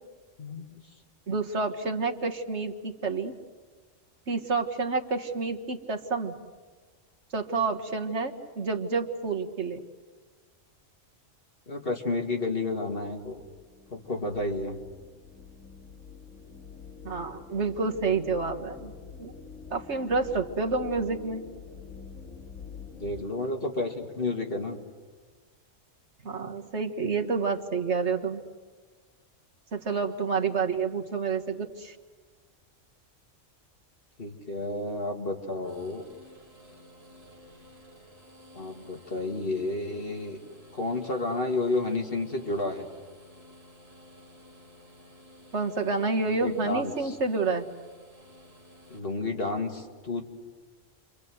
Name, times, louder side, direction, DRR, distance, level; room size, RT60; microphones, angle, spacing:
voice 1, 0.4-0.8 11.7-13.4 13.9-14.8 23.0-24.8 34.2-36.0 38.5-40.4 40.7-42.9 46.3-47.2 48.9-50.2, left 2 dB, 45° left, 3 dB, 2.5 m, -31 dB
voice 2, 1.3-3.3 4.3-6.3 7.3-9.8 17.0-18.9 19.2-19.3 19.7-21.4 26.2-28.4 29.7-32.0 45.5-47.7, right 4 dB, 60° right, 4 dB, 1.8 m, -29 dB
sound 1, 13.2-23.3, left 5 dB, 90° left, 2.3 m, -46 dB
sound 2, 35.6-49.0, left 1 dB, 25° right, 3.3 m, -53 dB
29.5 x 25.0 x 7.9 m, 1.4 s
omnidirectional pair, 1.3 m